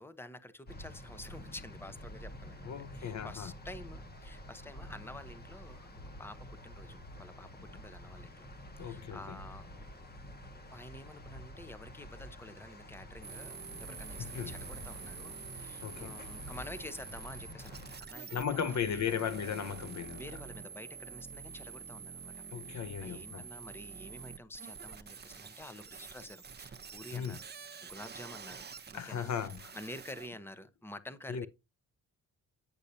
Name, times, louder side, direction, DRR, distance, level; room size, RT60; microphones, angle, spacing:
voice 1, 0.0-5.9 6.2-8.5 8.8-10.0 10.7-19.3 20.1-22.3 22.7-27.4 27.8-28.7 28.9-29.3 29.7-31.5, left 1 dB, 5° left, 0.9 m, -49 dB
sound 1, 0.7-18.0, equal, 30° left, 1.5 m, -49 dB
voice 2, 2.7-3.5 8.8-9.4 14.2-14.5 15.8-16.2 18.3-20.2 22.5-23.4 27.1-27.4 28.9-29.7 31.3-31.5, left 8 dB, 60° left, 0.8 m, -36 dB
sound 2, 13.2-30.3, right 6 dB, 30° right, 0.8 m, -47 dB
9.8 x 6.5 x 2.7 m
cardioid pair, 90°, 31 cm